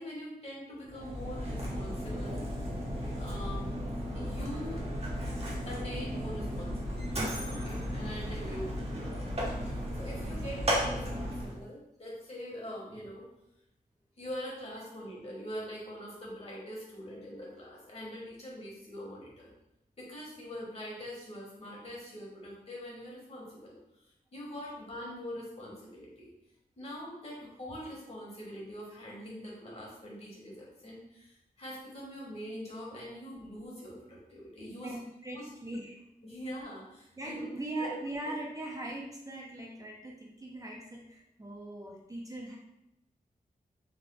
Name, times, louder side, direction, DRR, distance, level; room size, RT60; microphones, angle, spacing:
voice 1, 0.0-2.4 3.2-3.7 4.1-4.8 5.7-13.2 14.2-19.5 20.0-23.8 24.3-26.3 26.8-34.9 35.3-35.5 36.2-37.4 37.8-37.9, equal, 40° left, -5 dB, 1.4 m, -43 dB
Mechanisms, 0.9-11.6, equal, 40° right, 0.9 m, -35 dB
voice 2, 34.8-36.0 37.2-42.6, right 1 dB, 20° right, -2 dB, 0.5 m, -40 dB
3.4 x 2.3 x 3.7 m, 0.84 s
wide cardioid pair, 115°, 15 cm